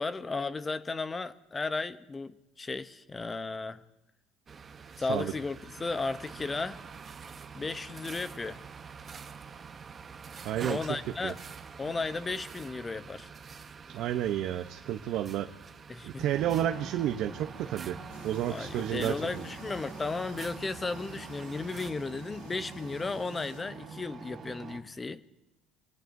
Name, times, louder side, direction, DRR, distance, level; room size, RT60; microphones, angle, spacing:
voice 1, 0.0-3.8 5.0-6.8 7.5-8.6 10.6-11.4 11.8-13.3 15.9-16.3 18.5-25.2, left 3 dB, 20° left, 13 dB, 0.7 m, -35 dB
sound 1, 4.5-21.9, right 5 dB, 30° right, 0.9 m, -47 dB
voice 2, 4.9-5.3 10.4-10.8 11.2-11.3 13.9-15.5 16.0-18.0 18.2-19.4, right 11 dB, 60° right, 6 dB, 0.7 m, -31 dB
sound 2, 16.3-24.8, right 4 dB, 45° right, 2.6 m, -45 dB
sound 3, 18.1-23.6, left 6 dB, 80° left, 3.2 m, -58 dB
26.5 x 19.0 x 2.7 m, 0.89 s
supercardioid pair, 105°, 0 cm